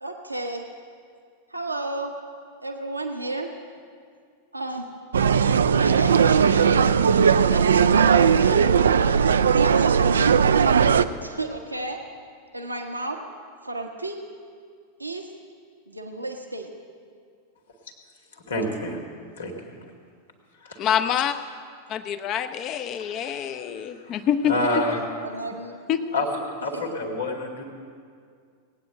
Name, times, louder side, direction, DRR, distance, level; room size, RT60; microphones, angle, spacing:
voice 1, 0.0-0.7 1.5-2.1 2.6-3.5 4.5-4.9 5.7-6.9 7.5-8.6 9.5-10.3 11.2-12.0 12.5-13.3 13.6-14.2 15.0-15.3 15.9-16.7 25.2-25.8 26.7-26.9, right 2 dB, 85° right, 3 dB, 1.1 m, -32 dB
sound 1, 5.1-11.0, right 7 dB, 70° right, 0.4 m, -18 dB
voice 2, 18.5-19.0 19.4-19.8 20.6-20.9 23.0-23.6 24.0-24.1 24.4-25.0 26.1-26.3 26.6-27.6, left 1 dB, 65° left, 1 dB, 2.2 m, -28 dB
voice 3, 20.8-21.4 21.9-24.8 25.9-26.1, left 9 dB, 35° left, 9 dB, 0.8 m, -26 dB
18.5 x 9.4 x 7.7 m, 2.2 s
figure-of-eight pair, 90°, 0 cm